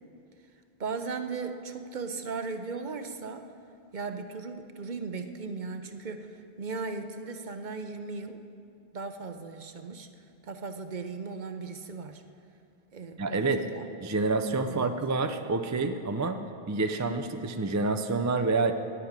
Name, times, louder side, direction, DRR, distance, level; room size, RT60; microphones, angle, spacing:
voice 1, 0.8-3.5 3.9-8.4 8.9-10.1 10.4-12.2 12.9-13.9 14.7-14.9, right 4 dB, 50° right, 8 dB, 0.8 m, -37 dB
voice 2, 13.2-13.7 14.0-16.4 16.7-18.7, right 3 dB, 25° right, 7 dB, 0.4 m, -28 dB
10.5 x 9.9 x 8.8 m, 2.5 s
omnidirectional pair, 1.0 m